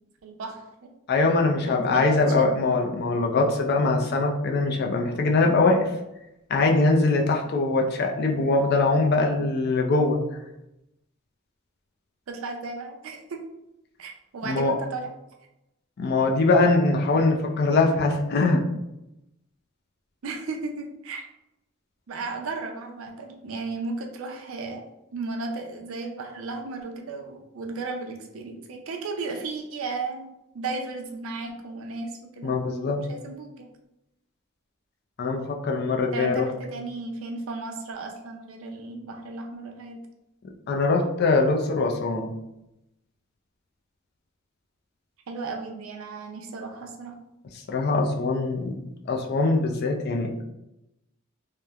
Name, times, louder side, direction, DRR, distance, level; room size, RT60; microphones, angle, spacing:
voice 1, 0.2-0.9 1.6-2.5 12.3-13.4 14.0-15.1 20.2-21.3 22.1-33.7 36.1-40.0 45.3-47.1, right 3 dB, 90° right, 2 dB, 0.4 m, -35 dB
voice 2, 1.1-5.9 6.5-10.2 14.5-14.7 16.0-18.6 32.4-33.0 35.2-36.5 40.7-42.3 47.7-48.7 49.1-50.4, left 3 dB, 50° left, 2 dB, 0.4 m, -22 dB
3.0 x 2.1 x 2.3 m, 0.89 s
head